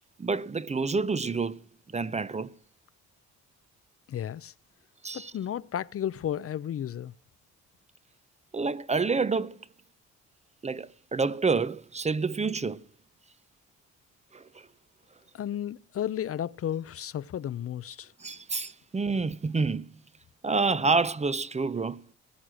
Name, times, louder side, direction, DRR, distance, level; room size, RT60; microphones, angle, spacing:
voice 1, 0.2-1.6 1.9-2.5 5.0-5.3 8.5-9.6 10.6-12.8 14.3-14.6 18.2-19.9 20.4-22.0, right 4 dB, 20° right, 0.7 m, -28 dB
voice 2, 4.1-4.5 5.1-7.1 15.3-18.1, left 10 dB, 50° left, 0.6 m, -33 dB
19.5 x 8.6 x 6.4 m
cardioid pair, 90°, 30 cm